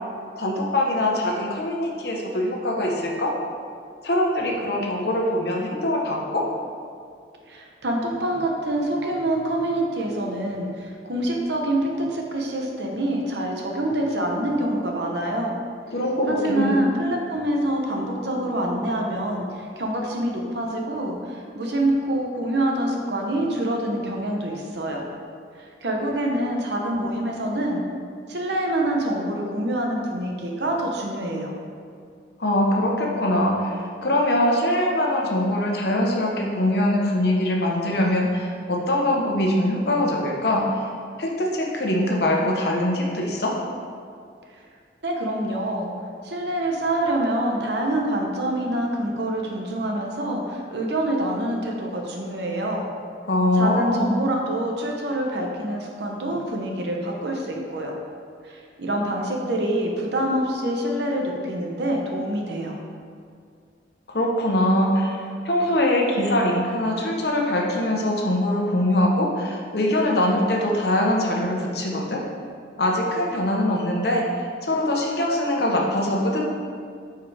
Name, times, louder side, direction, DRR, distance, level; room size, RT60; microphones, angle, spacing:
voice 1, 0.4-3.3 4.0-6.5 15.9-16.8 32.4-40.8 41.2-43.5 53.3-54.1 64.1-72.2 72.8-74.3 74.6-76.4, left 1 dB, 60° left, -1 dB, 1.0 m, -23 dB
voice 2, 7.4-15.6 16.3-25.0 25.8-27.8 28.3-31.5 45.0-45.9 46.2-52.9 53.5-57.9 58.4-62.8, right 1 dB, 65° right, 0 dB, 1.0 m, -26 dB
8.4 x 4.7 x 3.4 m, 2.2 s
head